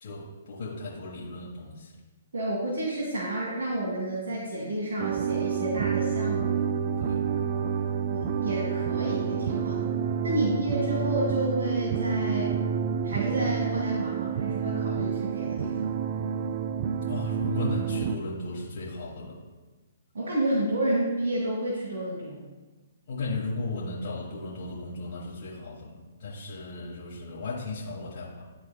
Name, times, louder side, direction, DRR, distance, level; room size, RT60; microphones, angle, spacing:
voice 1, 0.0-1.9 7.0-7.4 10.3-10.4 17.1-19.4 23.1-28.4, left 3 dB, 55° left, -6 dB, 1.4 m, -35 dB
voice 2, 2.3-6.6 8.1-9.9 10.2-12.6 13.0-15.9 20.1-22.4, right 1 dB, 75° right, -6 dB, 1.8 m, -30 dB
sound 1, 5.0-18.2, right 7 dB, 50° right, 0.3 m, -29 dB
12.0 x 4.0 x 2.3 m, 1.3 s
hypercardioid pair, 135°, 0 cm